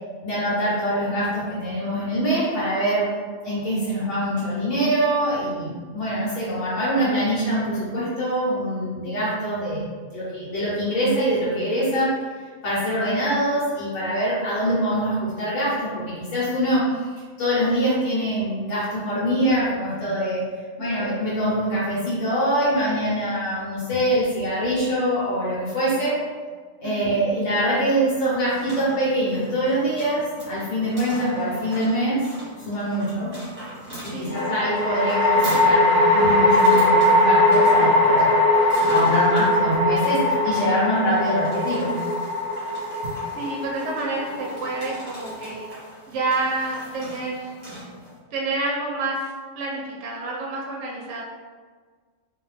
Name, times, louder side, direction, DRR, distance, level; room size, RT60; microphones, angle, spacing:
voice 1, 0.2-3.1 3.4-12.1 12.6-17.1 17.4-20.4 20.8-26.2 26.8-30.2 30.5-32.2 32.7-33.3 34.0-38.4 38.9-42.0, equal, 75° left, -9 dB, 1.1 m, -24 dB
voice 2, 20.8-21.1 26.8-27.2 34.1-34.6 43.3-45.7 46.1-47.5 48.3-51.2, right 3 dB, 70° right, -2 dB, 0.8 m, -29 dB
sound 1, 28.3-48.2, right 1 dB, 30° right, 1.0 m, -41 dB
sound 2, 31.2-31.9 34.3-45.6, left 1 dB, 50° left, 0.9 m, -20 dB
2.4 x 2.2 x 3.1 m, 1.5 s
omnidirectional pair, 1.3 m